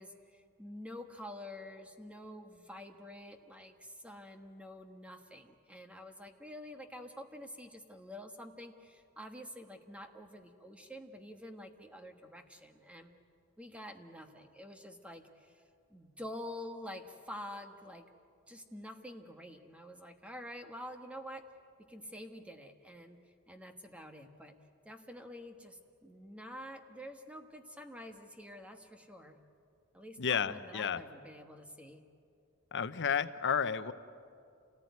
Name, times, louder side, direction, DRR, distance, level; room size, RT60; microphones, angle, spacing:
voice 1, 0.0-13.1 13.6-15.6 15.9-18.1 18.5-21.5 21.9-23.2 23.5-24.5 24.8-29.4 29.9-32.0, left 1 dB, 5° right, 5 dB, 1.3 m, -48 dB
voice 2, 30.2-31.0 32.7-33.9, left 7 dB, 55° left, 12 dB, 0.8 m, -32 dB
28.0 x 18.5 x 9.5 m, 2.5 s
head